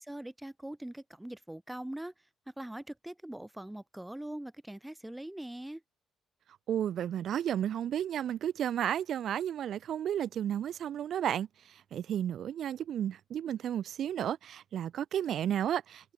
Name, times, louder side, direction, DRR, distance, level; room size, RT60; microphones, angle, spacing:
voice 1, 0.1-2.1 2.6-5.8, right 1 dB, 5° right, 1.5 m, -42 dB
voice 2, 6.7-16.1, right 10 dB, 55° right, 1.1 m, -33 dB
cardioid pair, 145°, 0 cm